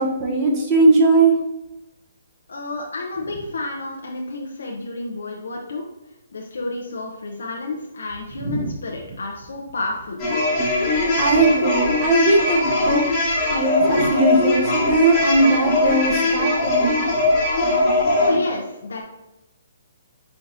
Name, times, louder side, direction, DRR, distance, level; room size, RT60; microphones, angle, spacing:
voice 1, 0.0-1.3 8.4-8.7 11.2-13.0 13.5-17.0, right 2 dB, 25° right, -1 dB, 0.7 m, -19 dB
voice 2, 2.5-5.9 6.3-10.2 18.2-19.0, left 2 dB, 80° left, 0 dB, 0.6 m, -30 dB
sound 1, 10.2-18.4, left 2 dB, 25° left, 1.2 m, -20 dB
4.5 x 3.9 x 2.6 m, 0.95 s
hypercardioid pair, 160°, 0 cm